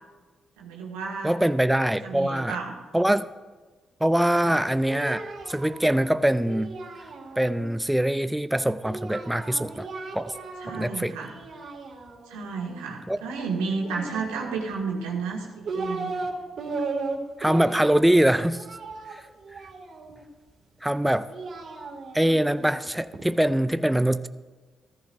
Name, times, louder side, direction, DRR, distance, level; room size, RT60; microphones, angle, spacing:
voice 1, 0.6-1.3 2.0-2.7 4.4-4.5 10.6-11.3 12.3-16.1, right 4 dB, 90° right, -1 dB, 1.8 m, -32 dB
voice 2, 1.2-2.6 2.9-3.3 4.0-5.2 5.5-6.7 7.4-9.9 10.1-10.3 10.7-11.1 13.1-13.2 17.4-18.6 19.1-19.2 20.8-21.3 22.1-24.3, right 1 dB, 5° right, 12 dB, 0.5 m, -23 dB
Singing, 4.4-7.7 8.8-10.9 11.2-12.4 13.8-14.7 15.3-16.3 16.6-20.2 21.0-23.3, right 3 dB, 65° right, 2.2 m, -36 dB
15.0 x 14.0 x 2.6 m, 1.3 s
hypercardioid pair, 45°, 0 cm